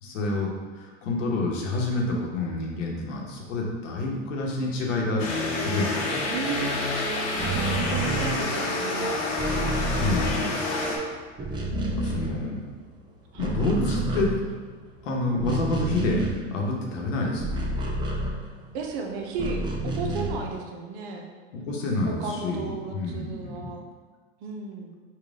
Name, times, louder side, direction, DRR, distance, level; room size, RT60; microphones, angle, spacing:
voice 1, 0.0-6.8 10.0-10.5 11.8-12.6 13.3-14.4 15.0-17.7 21.5-23.7, left 2 dB, 75° left, -1 dB, 1.0 m, -28 dB
sound 1, 5.2-11.0, left 2 dB, 45° left, 0.9 m, -28 dB
voice 2, 6.3-6.9 7.7-9.2 13.3-13.4 18.7-21.3 22.1-23.8 24.4-24.9, right 4 dB, 50° right, 2 dB, 0.7 m, -34 dB
sound 2, 7.3-10.9 11.2-12.9 13.2-18.8 19.3-20.6, right 2 dB, 15° right, 0.4 m, -30 dB
4.1 x 2.4 x 3.6 m, 1.5 s
hypercardioid pair, 100°, 38 cm